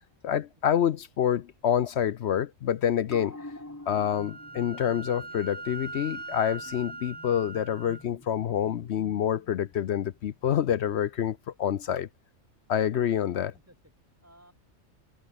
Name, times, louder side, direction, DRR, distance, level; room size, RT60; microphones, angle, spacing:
voice 1, 0.2-3.4 3.9-12.1 12.7-13.5, left 9 dB, 60° left, 0.8 m, -27 dB
sound 1, 3.1-10.0 10.3-10.4, left 1 dB, 10° left, 1.7 m, -48 dB
Wind instrument woodwind instrument, 3.9-8.0, right 3 dB, 75° right, 4.5 m, -41 dB
voice 2, 13.3-14.5, right 1 dB, 10° right, 7.2 m, -59 dB
omnidirectional pair, 1.4 m